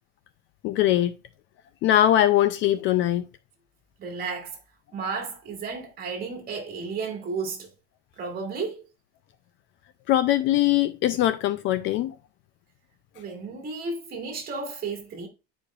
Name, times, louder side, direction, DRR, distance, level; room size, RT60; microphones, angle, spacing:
voice 1, 0.6-1.1 1.8-3.2 10.1-12.2, left 13 dB, 40° left, 0.4 m, -21 dB
voice 2, 4.0-4.6 4.9-7.7 8.2-8.9 13.1-15.3, right 4 dB, 30° right, 2.1 m, -33 dB
9.9 x 5.0 x 2.3 m
cardioid pair, 150°, 30 cm